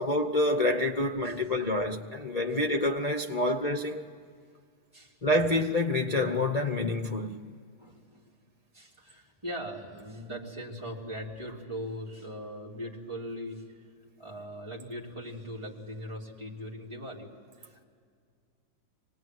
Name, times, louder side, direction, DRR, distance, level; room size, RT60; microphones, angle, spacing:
voice 1, 0.0-4.1 5.2-7.4, left 1 dB, 75° left, 0.3 m, -27 dB
voice 2, 0.9-1.3 4.9-5.2 7.8-8.3 8.7-13.9 14.2-17.3 17.6-17.9, equal, 15° right, 3.3 m, -40 dB
25.5 x 19.0 x 9.4 m
omnidirectional pair, 2.2 m